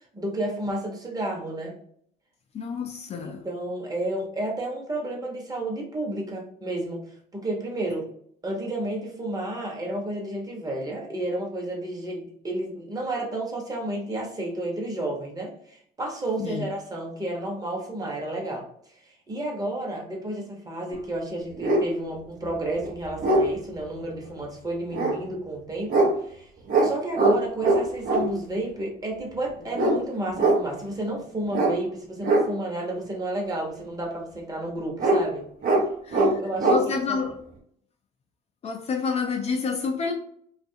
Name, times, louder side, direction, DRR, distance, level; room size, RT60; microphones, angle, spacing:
voice 1, 0.0-1.7 3.4-7.1 7.3-8.1 8.4-18.7 19.0-26.5 26.8-35.4 36.2-37.2, right 1 dB, 20° right, -1 dB, 0.9 m, -31 dB
voice 2, 2.5-3.4 16.4-16.7 36.0-36.2 36.6-37.4 38.6-40.1, left 5 dB, 40° left, 4 dB, 0.4 m, -28 dB
sound 1, 20.9-21.0 21.6-21.8 22.5-22.6 22.8-23.5 24.9-25.1 25.9-26.1 26.7-26.9 27.1-27.3 27.6-28.2 29.7-30.0 30.3-30.6 31.5-31.7 32.2-32.4 35.0-35.2 35.6-35.8 36.1-36.3 36.6-36.8, right 2 dB, 60° right, 0.7 m, -21 dB
2.5 x 2.4 x 2.6 m, 0.64 s
cardioid pair, 110°, 17 cm